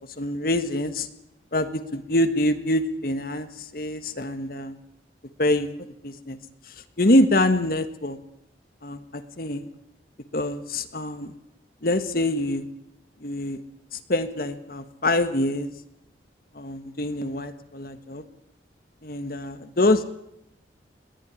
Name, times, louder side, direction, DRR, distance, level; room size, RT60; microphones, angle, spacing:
voice 1, 0.2-1.1 1.5-4.8 5.4-5.7 6.0-6.4 7.0-8.2 8.8-9.0 9.4-9.7 10.3-11.3 11.8-12.6 13.2-13.6 13.9-15.7 16.5-18.2 19.0-20.0, left 1 dB, 55° left, 9 dB, 1.4 m, -25 dB
21.5 x 15.5 x 9.9 m, 0.80 s
head